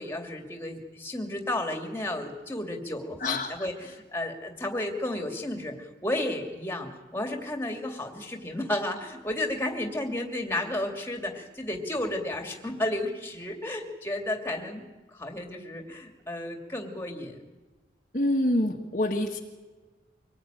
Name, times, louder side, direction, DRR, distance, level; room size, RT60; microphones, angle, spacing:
voice 1, 0.0-14.8 15.1-17.4, left 1 dB, 15° left, 3 dB, 2.7 m, -32 dB
voice 2, 3.2-3.5 18.1-19.4, left 1 dB, 45° left, 1 dB, 1.6 m, -26 dB
25.0 x 19.0 x 9.2 m, 1.2 s
head